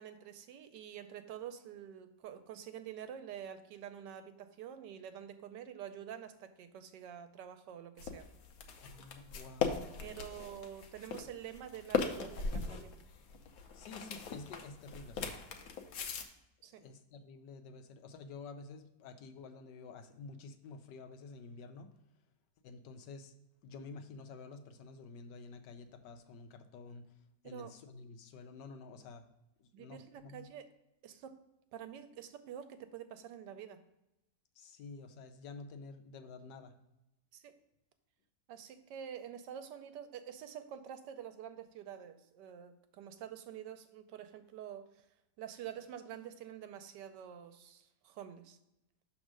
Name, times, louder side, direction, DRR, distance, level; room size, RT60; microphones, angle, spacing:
voice 1, 0.0-8.3 10.0-12.9 16.6-16.8 27.4-27.7 29.7-30.7 31.0-31.4 31.7-33.8 37.3-37.6 38.5-45.0 45.4-48.6, right 9 dB, 90° right, 9 dB, 1.3 m, -47 dB
sound 1, 8.0-16.2, left 5 dB, 65° left, 1.1 m, -39 dB
voice 2, 8.8-9.9 13.7-15.4 16.8-21.9 22.6-23.3 23.6-27.1 27.4-29.2 29.6-30.5 34.6-36.7, left 4 dB, 90° left, 7 dB, 1.4 m, -50 dB
6.2 x 3.5 x 6.0 m, 0.89 s
omnidirectional pair, 1.8 m